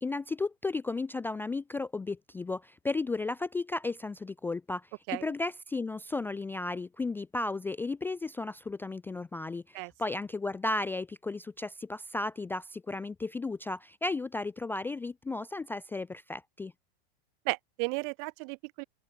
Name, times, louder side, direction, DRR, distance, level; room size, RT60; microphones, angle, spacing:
voice 1, 0.0-4.9 5.2-16.7, left 3 dB, 5° left, 0.4 m, -34 dB
voice 2, 17.4-18.8, right 40 dB or more, 45° right, 0.9 m, -34 dB
open air
hypercardioid pair, 125°, 32 cm